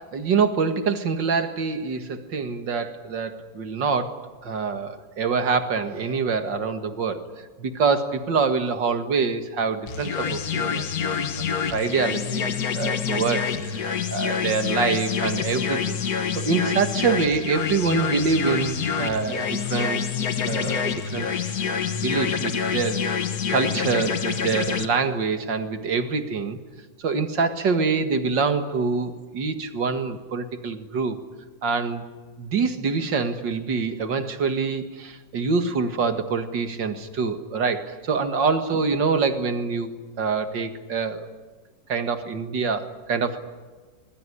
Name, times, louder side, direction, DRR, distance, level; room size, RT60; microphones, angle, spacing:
voice 1, 0.0-7.2 7.6-16.0 16.3-20.0 20.5-21.6 21.9-23.0 23.5-26.6 27.0-31.2 31.6-32.0 32.4-39.9 40.2-41.3 41.9-43.4, right 5 dB, 80° right, 7 dB, 2.5 m, -25 dB
sound 1, 9.9-24.9, left 7 dB, 55° left, 1.8 m, -27 dB
24.5 x 21.0 x 9.9 m, 1.3 s
omnidirectional pair, 2.0 m